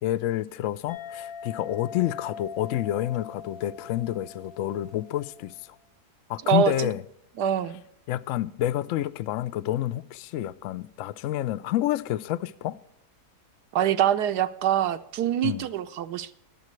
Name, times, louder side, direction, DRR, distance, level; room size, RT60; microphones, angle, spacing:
voice 1, 0.0-5.7 6.3-7.0 8.1-12.8 15.4-15.7, left 13 dB, 70° left, 0.8 m, -29 dB
sound 1, 0.9-5.6, left 7 dB, 45° left, 1.5 m, -42 dB
voice 2, 6.4-6.9 7.4-7.8 13.7-16.4, right 10 dB, 80° right, 1.3 m, -25 dB
22.5 x 7.5 x 3.1 m
omnidirectional pair, 1.7 m